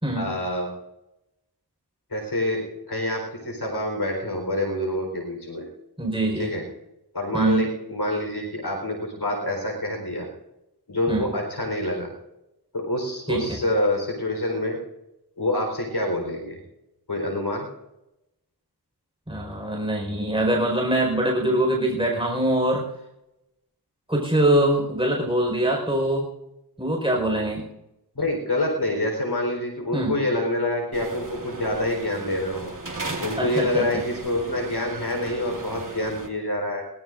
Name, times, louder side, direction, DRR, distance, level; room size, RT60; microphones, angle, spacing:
voice 1, 0.2-0.7 2.1-5.7 6.4-6.6 7.1-10.3 10.9-12.1 12.7-14.8 15.4-16.6 17.1-17.7 28.1-32.7 33.2-36.8, left 1 dB, 75° left, 2 dB, 4.3 m, -27 dB
voice 2, 6.0-6.5 7.3-7.7 11.1-11.3 13.3-13.6 19.3-22.8 24.1-26.3 26.8-27.7 29.9-30.1 33.4-33.8, right 1 dB, 15° right, -1 dB, 4.9 m, -23 dB
sound 1, 30.9-36.3, right 2 dB, 50° right, 2.6 m, -37 dB
22.0 x 18.0 x 2.6 m, 0.90 s
wide cardioid pair, 40°, 40 cm